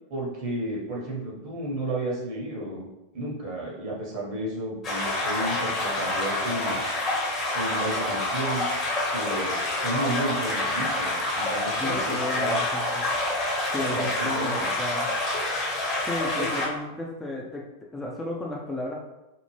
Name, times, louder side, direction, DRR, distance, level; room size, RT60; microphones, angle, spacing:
voice 1, 0.1-2.9 3.1-6.8 7.5-8.6 9.1-12.6 13.9-14.7 16.4-16.5, right 1 dB, 45° right, -4 dB, 1.1 m, -32 dB
sound 1, 4.8-16.7, left 2 dB, 25° left, 0.8 m, -27 dB
voice 2, 11.8-13.1 13.7-15.1 16.0-19.0, left 2 dB, 5° left, -3 dB, 0.4 m, -34 dB
2.8 x 2.0 x 3.2 m, 0.96 s
figure-of-eight pair, 90°, 0 cm